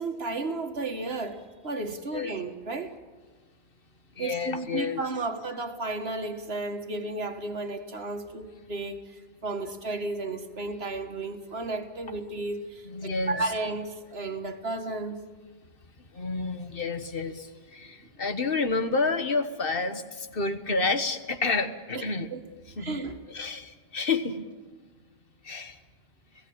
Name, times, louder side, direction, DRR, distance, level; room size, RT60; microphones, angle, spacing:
voice 1, 0.0-3.0 4.2-15.2 21.9-22.0 22.3-22.4 22.7-23.2, right 2 dB, 75° right, 2.0 m, -33 dB
voice 2, 4.2-5.0 12.9-13.4 16.1-22.3 22.8-23.0 23.3-24.4 25.4-25.8, left 3 dB, 60° left, 1.5 m, -29 dB
30.0 x 17.0 x 8.7 m
omnidirectional pair, 1.1 m